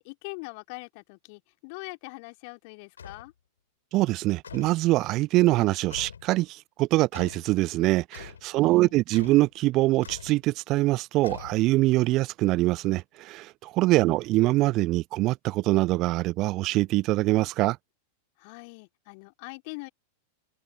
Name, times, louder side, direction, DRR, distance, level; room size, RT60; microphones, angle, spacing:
voice 1, 0.0-3.3 8.5-8.9 14.0-14.2 18.4-19.9, left 32 dB, 45° left, 3.0 m, -42 dB
sound 1, 3.0-3.3 4.4-4.8 5.9-6.3 7.1-7.5 8.1-8.5 9.1-9.5 10.0-10.4 11.2-11.9, left 7 dB, 70° left, 7.5 m, -43 dB
voice 2, 3.9-6.5 6.8-17.8, right 18 dB, 40° right, 0.9 m, -24 dB
figure-of-eight pair, 90°, 0 cm